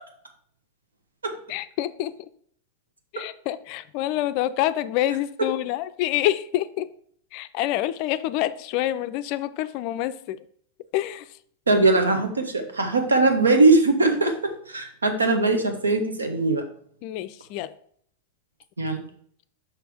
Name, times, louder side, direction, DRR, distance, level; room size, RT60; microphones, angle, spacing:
voice 1, 1.5-2.1 3.1-6.9 7.3-10.4 10.9-11.3 17.0-17.7, left 13 dB, 45° left, 13 dB, 0.4 m, -27 dB
voice 2, 11.7-16.6 18.8-19.0, right 3 dB, 75° right, 6 dB, 1.0 m, -20 dB
5.9 x 5.8 x 3.5 m, 0.62 s
figure-of-eight pair, 90°, 0 cm